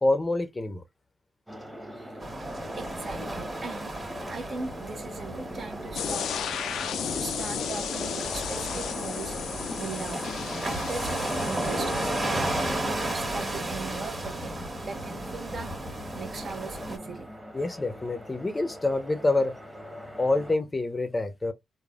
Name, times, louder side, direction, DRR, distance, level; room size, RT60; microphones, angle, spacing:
voice 1, 0.0-0.8 7.0-7.1 17.5-19.6 20.2-21.5, left 2 dB, 25° left, 0.6 m, -26 dB
sound 1, 1.5-20.5, equal, 10° right, 1.0 m, -42 dB
sound 2, 2.2-17.0, right 1 dB, 30° right, 1.3 m, -34 dB
voice 2, 2.7-3.9 4.3-6.6 7.1-9.4 9.8-10.2 10.6-12.5 12.9-14.5 14.8-15.7 16.1-17.3, right 4 dB, 50° right, 0.8 m, -39 dB
sound 3, 5.9-12.7, left 8 dB, 80° left, 0.3 m, -34 dB
3.2 x 2.2 x 2.3 m
cardioid pair, 70°, 0 cm